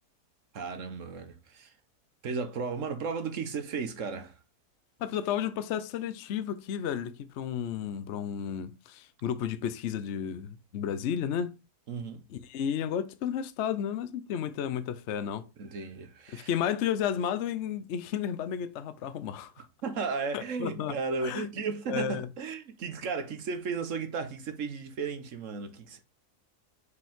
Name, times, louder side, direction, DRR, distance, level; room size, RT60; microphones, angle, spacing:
voice 1, 0.5-1.7 2.2-4.4 11.9-12.3 15.6-16.5 19.8-26.0, right 4 dB, 60° right, 1.2 m, -34 dB
voice 2, 5.0-11.5 12.3-15.5 16.3-19.7 20.3-20.9 21.2-21.5 21.9-22.3, left 9 dB, 60° left, 0.8 m, -32 dB
6.3 x 5.1 x 3.6 m
omnidirectional pair, 1.6 m